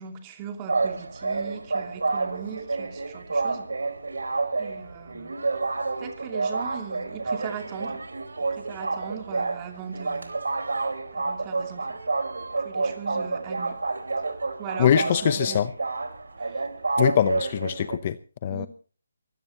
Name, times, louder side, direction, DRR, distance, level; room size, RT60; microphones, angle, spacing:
voice 1, 0.0-3.7 4.6-5.4 6.0-8.0 8.5-10.3 11.1-12.0 12.6-13.8 14.6-15.6 16.4-16.6 18.5-18.7, right 8 dB, 20° right, 2.6 m, -39 dB
sound 1, 0.7-18.0, right 3 dB, 85° right, 4.1 m, -29 dB
voice 2, 14.8-15.7 17.0-18.7, left 9 dB, 30° left, 0.8 m, -23 dB
23.5 x 16.5 x 2.9 m
hypercardioid pair, 165°, 0 cm